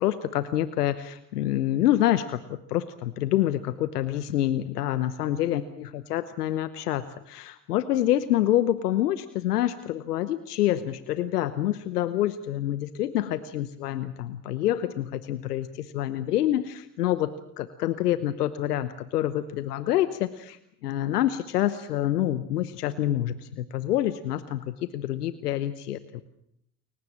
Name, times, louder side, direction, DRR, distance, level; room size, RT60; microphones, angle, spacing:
voice 1, 0.0-26.2, left 13 dB, 85° left, 14 dB, 1.0 m, -27 dB
29.5 x 16.0 x 7.3 m, 0.72 s
hypercardioid pair, 55°, 45 cm